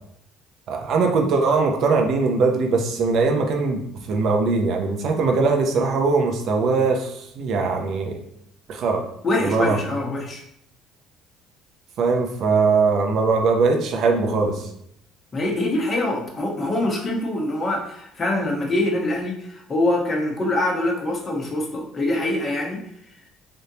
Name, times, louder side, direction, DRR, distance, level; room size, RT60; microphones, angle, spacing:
voice 1, 0.7-8.2 8.7-9.0 9.4-9.8 12.0-14.6, right 4 dB, 60° right, 3 dB, 0.6 m, -21 dB
voice 2, 9.2-10.4 15.3-22.8, left 1 dB, 35° left, 0 dB, 1.1 m, -24 dB
3.5 x 2.6 x 2.8 m, 0.72 s
supercardioid pair, 75°, 0 cm